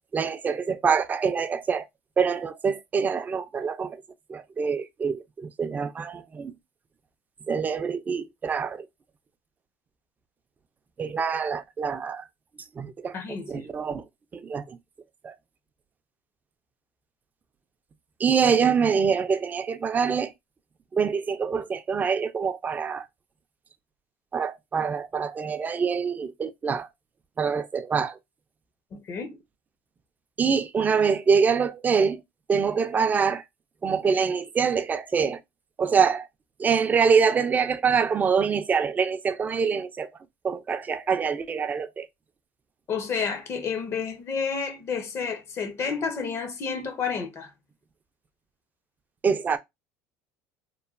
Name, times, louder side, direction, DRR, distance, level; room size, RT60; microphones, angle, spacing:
voice 1, 0.1-1.9 2.2-4.0 4.3-6.5 7.5-8.9 11.0-12.3 12.8-13.2 13.5-14.0 14.3-14.8 15.2-15.3 18.2-20.3 20.9-23.1 24.3-26.9 27.4-28.2 30.4-32.2 32.5-33.4 33.8-35.4 35.8-36.3 36.6-40.1 40.4-42.1 49.2-49.6, right 6 dB, 25° right, 0.4 m, -25 dB
voice 2, 13.1-13.7 28.9-29.4 42.9-47.5, left 6 dB, 40° left, 0.6 m, -30 dB
3.0 x 2.1 x 2.4 m
supercardioid pair, 110°, 7 cm